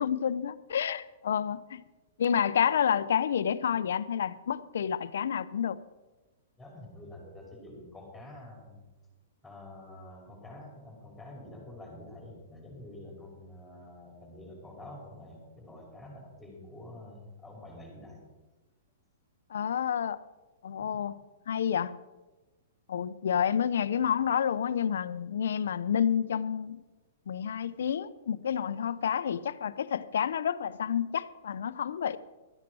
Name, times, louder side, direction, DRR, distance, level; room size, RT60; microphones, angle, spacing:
voice 1, 0.0-1.8 2.2-5.8 19.5-20.2 20.6-21.1 21.5-21.9 22.9-26.8 27.3-32.2, left 8 dB, 75° left, 0.7 m, -29 dB
voice 2, 6.6-8.8 9.4-18.2 20.8-21.0, left 1 dB, 5° left, 5.0 m, -47 dB
13.5 x 9.6 x 6.2 m
hypercardioid pair, 135°, 0 cm